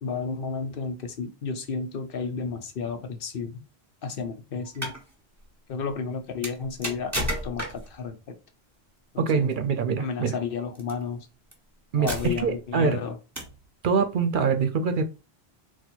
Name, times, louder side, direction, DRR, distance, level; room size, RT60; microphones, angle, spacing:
voice 1, 0.0-3.6 4.0-4.9 5.7-7.1 7.4-8.3 9.1-9.5 10.0-11.3 12.0-13.2, left 5 dB, 65° left, 0.9 m, -32 dB
sound 1, 4.6-5.0 6.4-8.0 9.3-9.5 10.7-10.9 11.5-11.6 12.1-12.6 13.4-13.6, equal, 15° right, 1.3 m, -32 dB
voice 2, 9.2-10.3 11.9-13.0 13.8-15.0, right 5 dB, 60° right, 0.7 m, -24 dB
4.0 x 2.3 x 4.4 m
omnidirectional pair, 1.0 m